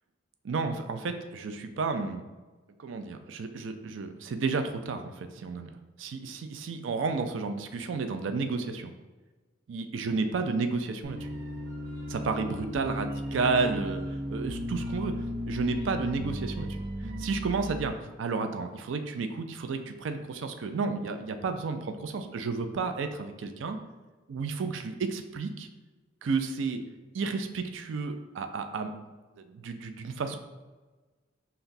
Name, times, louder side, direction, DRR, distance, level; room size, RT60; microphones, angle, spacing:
voice 1, 0.4-2.3 2.8-5.7 6.0-8.9 9.7-11.2 12.1-14.0 14.3-15.1 15.5-16.7 17.2-17.9 18.2-23.8 24.3-25.7 26.2-26.8 27.1-28.9 29.5-30.4, right 4 dB, 75° right, 7 dB, 0.4 m, -31 dB
sound 1, 11.0-17.9, equal, 55° right, 0.9 m, -35 dB
5.7 x 2.2 x 2.6 m, 1.2 s
head